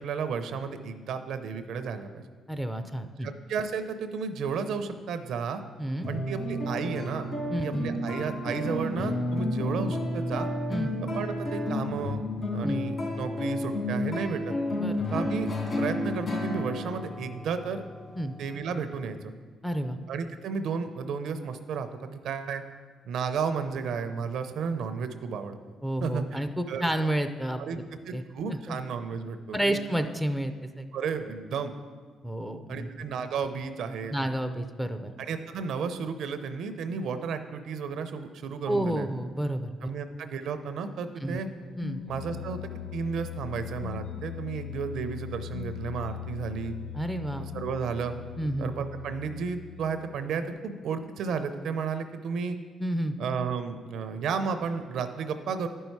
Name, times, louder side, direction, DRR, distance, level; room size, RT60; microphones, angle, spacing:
voice 1, 0.0-2.2 3.2-5.6 6.1-7.3 7.6-10.5 11.0-12.2 12.5-14.6 15.1-15.5 15.8-17.8 18.4-19.3 20.1-22.6 23.0-25.6 26.0-26.9 27.6-29.8 30.9-31.7 32.7-34.2 35.2-39.1 39.8-41.5 42.1-42.6 42.9-46.8 47.4-48.1 48.6-52.6 53.2-55.7, right 6 dB, 75° right, 9 dB, 0.6 m, -33 dB
voice 2, 2.5-3.3 5.8-6.1 7.5-7.9 10.7-10.9 12.6-12.8 14.8-15.0 18.2-18.3 19.6-20.0 25.8-27.6 28.1-28.2 28.5-28.8 29.5-30.9 32.2-32.9 34.1-35.1 38.7-39.7 41.2-41.4 41.8-42.0 46.9-47.5 48.4-48.7 52.8-53.1, right 1 dB, 5° left, 7 dB, 0.5 m, -30 dB
sound 1, 6.0-18.8, left 1 dB, 45° left, 2.4 m, -31 dB
sound 2, 41.6-50.4, left 11 dB, 80° left, 0.6 m, -40 dB
11.0 x 5.5 x 4.6 m, 1.5 s
cardioid pair, 90°, 0 cm